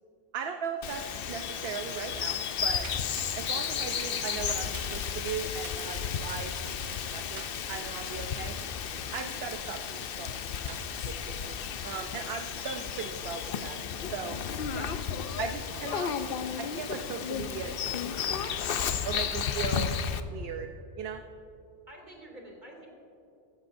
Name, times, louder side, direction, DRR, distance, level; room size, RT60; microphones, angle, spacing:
voice 1, 0.3-2.9 3.4-8.6 9.1-11.6 11.8-13.8 14.1-14.4 14.7-14.9 15.4-16.1 16.8-18.1 18.3-18.6 19.0-19.9 20.3-20.7 21.0-21.2, right 6 dB, 60° right, 6 dB, 0.8 m, -38 dB
Bird vocalization bird call bird song, 0.8-20.2, left 7 dB, 60° left, 0.7 m, -33 dB
sound 1, 2.8-3.6 4.5-5.3 5.6-6.1 7.4-7.9 9.2-9.5 10.7-10.8, right 9 dB, 90° right, 1.0 m, -49 dB
voice 2, 15.7-16.4 19.5-20.1 21.9-22.9, right 1 dB, 40° right, -1 dB, 2.8 m, -49 dB
15.5 x 14.5 x 2.6 m, 2.7 s
omnidirectional pair, 1.2 m